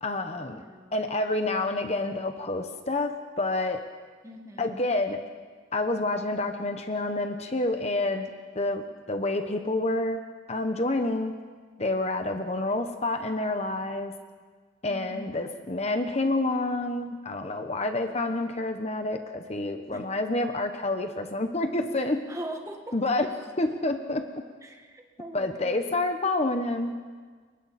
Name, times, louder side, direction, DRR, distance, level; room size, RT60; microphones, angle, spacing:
voice 1, 0.0-0.6 0.9-3.8 4.6-5.2 5.7-8.3 8.5-10.2 10.5-11.3 11.8-14.1 14.8-22.2 22.9-23.3 23.6-24.4 25.3-26.9, left 2 dB, 35° left, 6 dB, 1.1 m, -28 dB
voice 2, 0.6-0.9 4.2-4.9 14.9-15.3 19.9-20.0 22.3-23.2 24.6-26.0, right 1 dB, 15° right, 2 dB, 1.9 m, -41 dB
29.5 x 24.0 x 4.3 m, 1.5 s
head